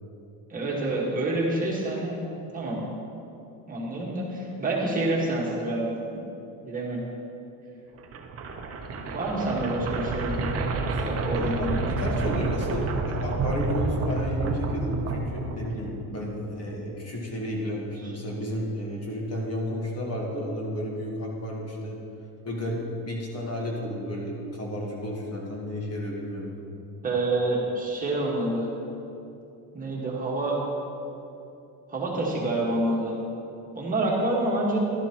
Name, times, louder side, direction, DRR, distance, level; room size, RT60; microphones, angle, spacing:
voice 1, 0.5-2.2 2.5-2.8 3.7-5.9 6.6-7.0 9.1-10.6 11.0-11.8 18.0-18.1 27.0-28.7 29.7-30.6 31.9-33.2 33.7-34.8, right 2 dB, 20° right, -5 dB, 1.7 m, -27 dB
sound 1, 8.0-16.0, right 3 dB, 35° right, 0.8 m, -29 dB
voice 2, 11.3-22.0 22.4-22.8 23.1-26.5, equal, 40° left, -2 dB, 1.7 m, -32 dB
11.5 x 11.0 x 3.1 m, 2.9 s
cardioid pair, 145°, 40 cm